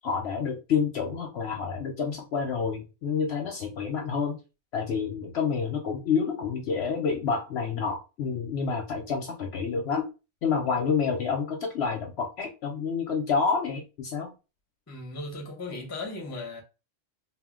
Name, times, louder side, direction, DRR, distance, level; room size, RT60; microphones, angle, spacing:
voice 1, 0.0-4.4 4.7-10.1 10.4-14.3, left 5 dB, 65° left, 0.7 m, -28 dB
voice 2, 14.9-16.6, left 2 dB, 20° left, 0.5 m, -37 dB
2.2 x 2.1 x 3.5 m
omnidirectional pair, 1.4 m